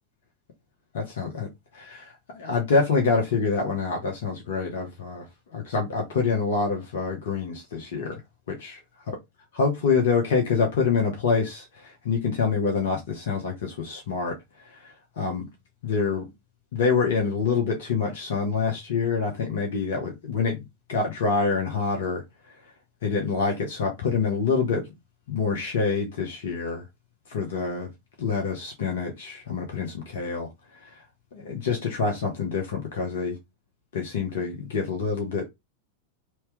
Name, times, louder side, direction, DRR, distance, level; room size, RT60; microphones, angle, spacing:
voice 1, 0.9-5.3 5.5-8.2 8.5-8.8 9.5-14.4 14.8-15.5 15.8-16.2 16.7-22.2 23.0-24.9 25.3-26.8 27.3-27.9 28.2-30.5 30.8-30.9 31.3-33.4 33.9-35.5, left 5 dB, 55° left, 1.0 m, -26 dB
3.0 x 2.9 x 3.3 m
figure-of-eight pair, 90°, 0 cm